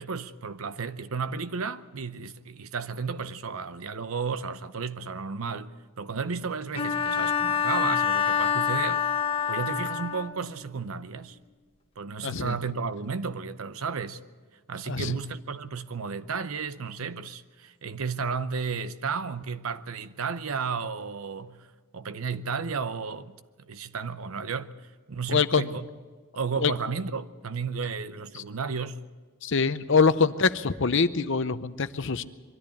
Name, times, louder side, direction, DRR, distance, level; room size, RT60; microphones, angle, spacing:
voice 1, 0.0-9.0 9.5-11.4 12.0-14.2 14.7-21.7 21.9-23.3 23.7-24.8 25.1-25.9 26.3-29.0, right 5 dB, 75° right, 0.7 m, -33 dB
Bowed string instrument, 6.7-10.5, left 8 dB, 25° left, 1.3 m, -26 dB
voice 2, 12.2-12.6 14.9-15.1 25.3-25.7 26.6-26.7 29.4-32.2, left 5 dB, 60° left, 0.7 m, -24 dB
22.5 x 13.5 x 8.5 m
head